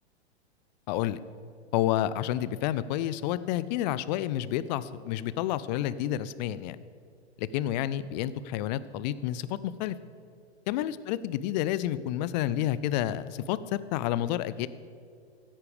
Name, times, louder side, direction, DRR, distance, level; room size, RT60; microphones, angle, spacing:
voice 1, 0.9-1.2 1.7-6.8 7.4-10.0 10.7-14.7, left 12 dB, 40° left, 16 dB, 0.5 m, -30 dB
15.0 x 8.6 x 5.2 m, 2.2 s
hypercardioid pair, 105°, 33 cm